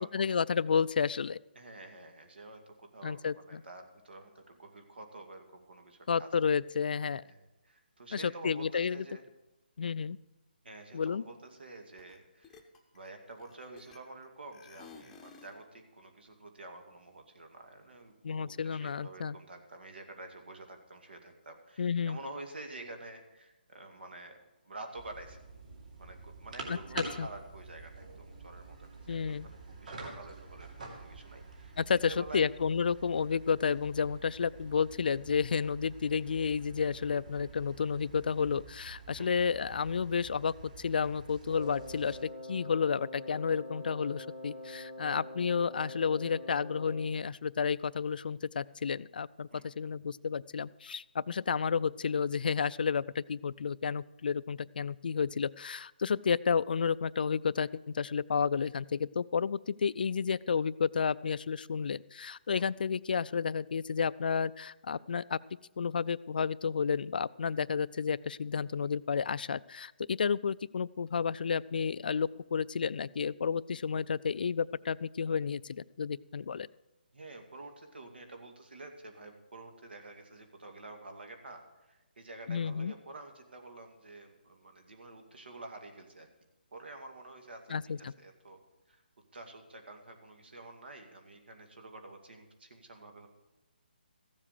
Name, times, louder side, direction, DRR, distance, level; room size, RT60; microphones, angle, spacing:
voice 1, 0.1-1.4 3.0-3.6 6.1-7.2 8.1-9.1 9.8-10.2 10.9-11.2 18.2-19.4 21.8-22.2 26.7-27.3 29.1-29.5 31.8-65.4 65.8-76.7 82.5-82.9 87.7-88.1, left 6 dB, 60° left, 18 dB, 0.3 m, -31 dB
voice 2, 1.6-6.3 7.2-9.2 10.6-12.6 12.9-24.4 24.6-25.4 26.0-28.9 29.3-32.4 39.2-39.3 49.5-49.6 62.5-62.7 77.1-86.3 86.7-87.7 88.2-88.6 88.9-89.0 89.3-93.3, right 2 dB, 80° right, 4 dB, 2.3 m, -49 dB
sound 1, 12.0-12.2 12.4-14.2 14.5-15.6, left 5 dB, 10° left, 0.8 m, -54 dB
sound 2, 24.9-42.2, right 3 dB, 50° right, 2.6 m, -48 dB
Wind instrument woodwind instrument, 41.5-47.2, left 1 dB, 35° right, 2.9 m, -45 dB
15.0 x 7.5 x 6.6 m, 1.0 s
hypercardioid pair, 165°, 6 cm